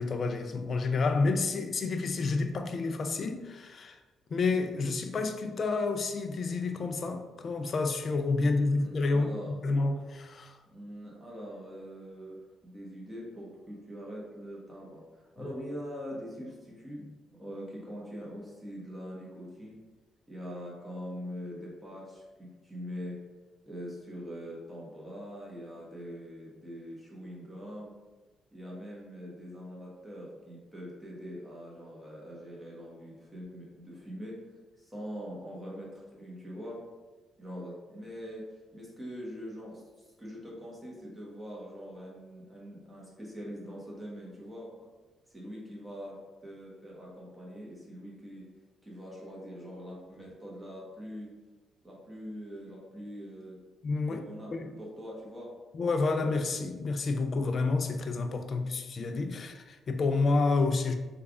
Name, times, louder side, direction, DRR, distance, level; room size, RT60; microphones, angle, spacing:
voice 1, 0.0-4.0 4.3-10.5 15.4-15.5 53.8-54.2 54.5-54.7 55.7-60.9, left 3 dB, 45° left, 0.3 m, -29 dB
voice 2, 8.4-9.6 10.7-19.8 20.3-23.2 23.7-27.9 28.5-34.4 34.8-36.8 37.4-44.9 45.3-48.5 48.8-51.3 51.8-53.6 54.0-54.5 54.8-55.5, equal, 15° right, 0.9 m, -43 dB
3.3 x 2.3 x 3.5 m
cardioid pair, 90°, 0 cm